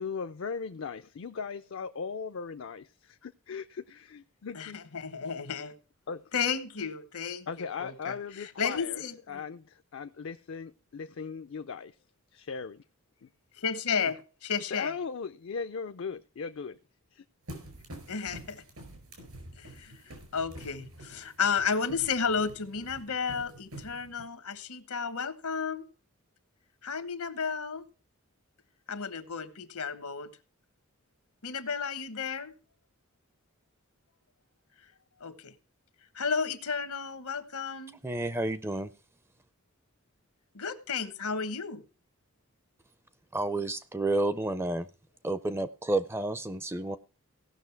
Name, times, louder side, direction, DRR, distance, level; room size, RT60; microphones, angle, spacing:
voice 1, 0.0-4.8 5.2-5.3 6.1-6.3 7.5-9.0 9.3-12.0 12.3-12.8 13.2-13.3 14.0-14.1 14.7-16.8 17.1-17.2 17.5-17.6, left 5 dB, 60° left, 0.4 m, -38 dB
voice 2, 4.5-5.7 6.3-9.4 13.6-14.9 18.1-18.6 19.6-25.9 26.8-27.8 28.9-30.3 31.4-32.5 35.2-35.5 36.1-38.0 40.5-41.8, left 6 dB, 85° left, 1.2 m, -33 dB
sound 1, 17.5-24.2, right 1 dB, 80° right, 5.0 m, -47 dB
voice 3, 38.0-38.9 43.3-44.9 45.2-47.0, right 2 dB, 10° right, 0.4 m, -30 dB
17.0 x 6.2 x 4.6 m
head